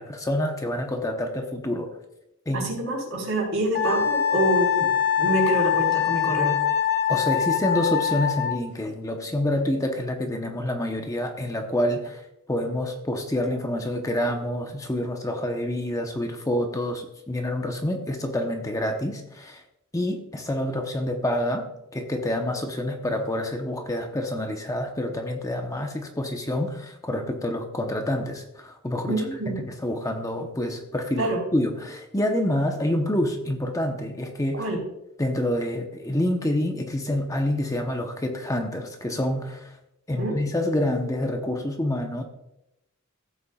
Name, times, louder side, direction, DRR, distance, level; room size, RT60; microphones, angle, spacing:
voice 1, 0.0-2.0 2.5-2.6 7.1-12.2 12.5-19.6 19.9-34.7 35.2-39.7 40.1-42.2, left 1 dB, 15° left, 4 dB, 0.9 m, -27 dB
voice 2, 2.5-4.9 5.2-6.6 29.1-29.6 31.2-31.4 34.6-34.8 40.2-40.4, right 1 dB, 70° right, -1 dB, 4.2 m, -26 dB
Wind instrument woodwind instrument, 3.7-8.6, left 9 dB, 50° left, 1.0 m, -23 dB
15.5 x 8.4 x 2.4 m, 0.85 s
head